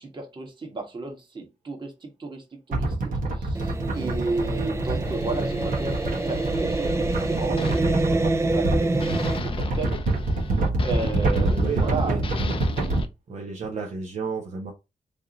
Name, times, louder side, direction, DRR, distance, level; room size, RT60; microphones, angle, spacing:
voice 1, 0.0-10.0 10.8-12.2, right 3 dB, 35° right, 1.4 m, -33 dB
sound 1, 2.7-13.0, right 2 dB, 85° right, 1.2 m, -26 dB
sound 2, 3.5-9.4, right 2 dB, 20° right, 0.4 m, -26 dB
sound 3, 5.0-8.7 9.0-13.1, left 5 dB, 40° left, 0.6 m, -38 dB
voice 2, 11.5-12.2 13.3-14.7, right 5 dB, 60° right, 0.8 m, -33 dB
3.4 x 2.8 x 3.9 m
wide cardioid pair, 125°, 14 cm